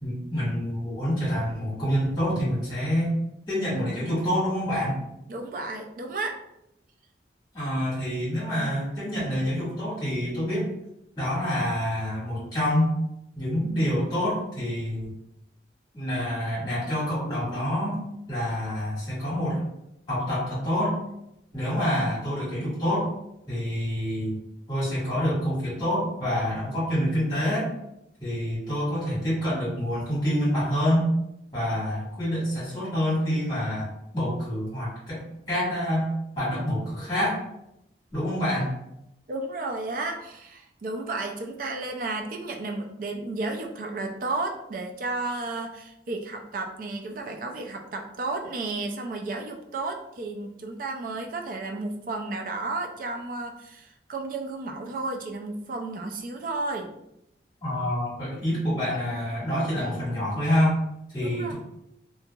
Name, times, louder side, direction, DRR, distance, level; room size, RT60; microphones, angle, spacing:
voice 1, 0.0-3.1 3.5-5.0 7.5-10.6 11.1-12.9 13.3-15.1 15.9-18.0 18.3-19.7 20.1-21.0 21.5-23.1 23.5-24.4 24.7-27.7 28.2-31.1 31.5-35.2 35.5-36.1 36.3-37.4 38.1-38.7 57.6-60.8 61.1-61.5, equal, 25° left, -9 dB, 1.5 m, -27 dB
voice 2, 5.3-6.4 39.3-56.9 61.2-61.5, right 2 dB, 50° right, 4 dB, 0.3 m, -33 dB
2.8 x 2.6 x 2.2 m, 0.83 s
head